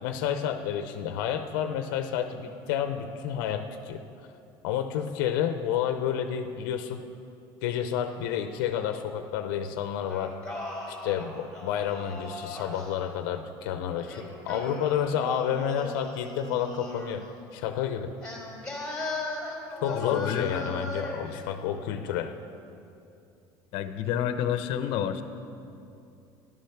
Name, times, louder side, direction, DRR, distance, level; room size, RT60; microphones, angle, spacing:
voice 1, 0.0-4.0 4.6-7.0 7.6-10.3 10.9-17.3 17.5-18.1 19.8-22.3, left 9 dB, 90° left, 8 dB, 0.7 m, -30 dB
Singing, 10.1-12.9 14.0-17.2 18.2-21.3, left 1 dB, 5° left, 3.1 m, -38 dB
voice 2, 19.9-20.7 21.2-21.3 23.7-25.2, left 9 dB, 60° left, 9 dB, 0.8 m, -29 dB
12.0 x 11.0 x 5.9 m, 2.7 s
cardioid pair, 135°, 11 cm